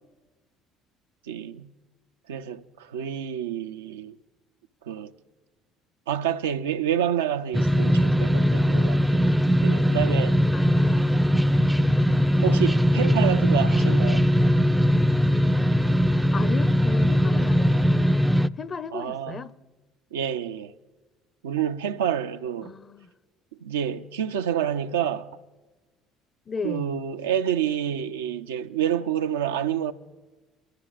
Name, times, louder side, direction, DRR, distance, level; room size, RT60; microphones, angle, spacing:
voice 1, 1.2-1.7 2.3-4.2 4.8-5.1 6.1-9.2 9.6-10.4 12.4-14.3 18.9-19.5 20.1-20.7 21.4-22.7 23.6-25.3 26.6-29.9, right 9 dB, 80° right, 0.5 m, -28 dB
sound 1, 7.5-18.5, equal, 5° right, 0.4 m, -20 dB
voice 2, 10.5-11.3 16.3-18.2 18.6-19.5 22.6-23.1 26.5-26.9, left 5 dB, 35° left, 0.6 m, -35 dB
22.5 x 13.0 x 2.5 m
hypercardioid pair, 60°, 0 cm